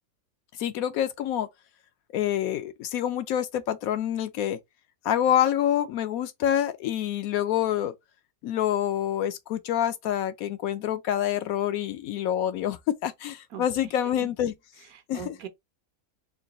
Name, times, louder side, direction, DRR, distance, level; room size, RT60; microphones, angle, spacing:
voice 1, 0.6-1.5 2.1-4.6 5.0-7.9 8.4-14.5 15.1-15.3, left 11 dB, 75° left, 1.0 m, -27 dB
voice 2, 13.9-14.3 14.9-15.5, right 8 dB, 75° right, 1.3 m, -41 dB
3.9 x 2.2 x 3.8 m
omnidirectional pair, 1.6 m